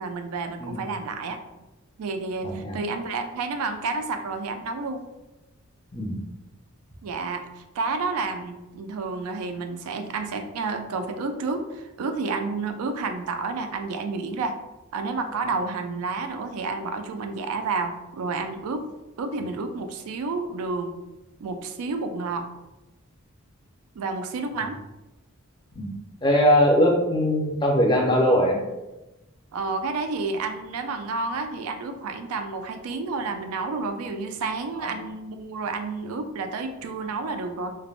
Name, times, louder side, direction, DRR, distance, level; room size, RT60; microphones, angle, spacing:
voice 1, 0.0-1.4 2.0-5.0 7.0-14.5 14.9-18.9 19.2-21.0 21.4-22.5 24.0-24.8 29.5-37.8, right 3 dB, 85° right, 7 dB, 0.3 m, -30 dB
voice 2, 2.4-2.8 5.9-6.2 25.7-25.9 26.2-28.6 34.8-34.9, equal, 20° left, -1 dB, 0.5 m, -21 dB
3.3 x 2.0 x 2.4 m, 1.0 s
head